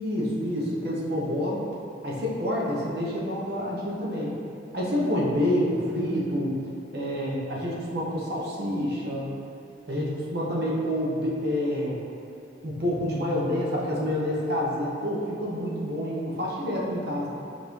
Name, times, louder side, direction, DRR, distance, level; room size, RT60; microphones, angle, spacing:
voice 1, 0.0-1.6 2.0-4.3 4.7-6.5 6.9-9.4 9.9-12.0 12.6-17.3, equal, 60° right, -5 dB, 0.8 m, -28 dB
5.1 x 2.6 x 3.1 m, 2.6 s
head